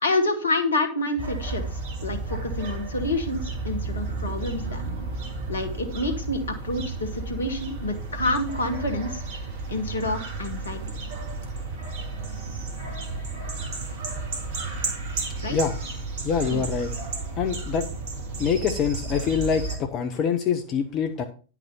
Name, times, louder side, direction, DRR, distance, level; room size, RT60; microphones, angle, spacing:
voice 1, 0.0-4.8 5.5-9.4 9.7-10.8 15.4-15.6 16.5-16.7, left 2 dB, 70° left, 7 dB, 1.7 m, -28 dB
sound 1, 1.2-19.8, right 3 dB, 55° right, 2.3 m, -32 dB
voice 2, 16.2-16.9 17.4-17.9 18.4-21.2, left 7 dB, 35° left, 7 dB, 0.9 m, -25 dB
10.5 x 6.0 x 4.4 m, 0.37 s
figure-of-eight pair, 90°, 0 cm